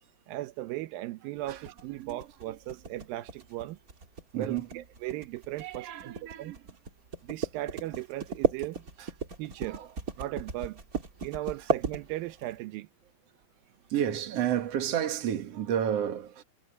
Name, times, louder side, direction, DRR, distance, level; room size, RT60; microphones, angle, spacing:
voice 1, 0.3-3.8 4.4-6.5 7.2-8.9 9.4-9.8 10.2-10.8 11.2-12.9, right 16 dB, 85° right, 2.6 m, -37 dB
sound 1, 1.5-12.5, right 4 dB, 25° right, 2.5 m, -34 dB
voice 2, 4.3-4.8 5.6-6.6 9.0-9.1 9.6-9.9 13.9-16.4, right 10 dB, 50° right, 2.6 m, -31 dB
omnidirectional pair, 4.0 m